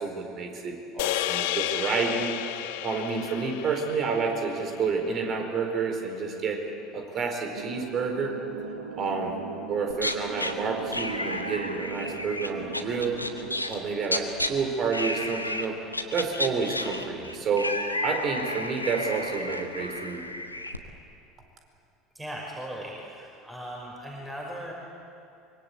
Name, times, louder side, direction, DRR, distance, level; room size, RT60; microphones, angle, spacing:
voice 1, 0.0-2.3 2.8-6.6 6.9-8.3 9.0-9.4 9.7-13.2 13.7-15.8 16.1-17.7 18.0-20.3, right 5 dB, 40° right, 3 dB, 4.5 m, -29 dB
sound 1, 1.0-5.4, left 13 dB, 60° left, 1.1 m, -32 dB
sound 2, 7.5-13.6, right 5 dB, 75° right, 1.7 m, -39 dB
sound 3, 9.9-10.5 10.9-14.5 14.9-15.6 15.9-20.8, left 1 dB, 90° left, 1.4 m, -32 dB
voice 2, 22.1-24.7, equal, 10° right, -2 dB, 5.5 m, -38 dB
24.5 x 23.5 x 8.2 m, 2.6 s
figure-of-eight pair, 70°, 0 cm